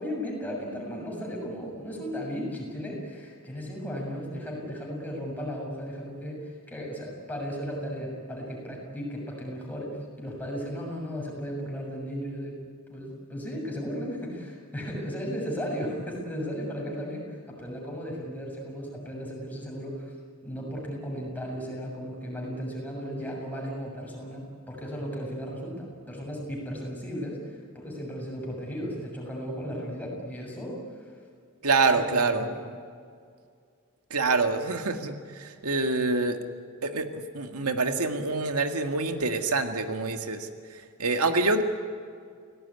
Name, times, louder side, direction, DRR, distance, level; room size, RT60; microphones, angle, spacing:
voice 1, 0.0-12.6 12.9-20.1 20.4-31.1 32.0-32.6, equal, 10° left, -2 dB, 6.8 m, -35 dB
voice 2, 31.6-32.5 34.1-36.4 36.8-40.5 41.0-41.6, right 3 dB, 90° right, 6 dB, 2.0 m, -26 dB
29.5 x 18.0 x 9.7 m, 2.2 s
head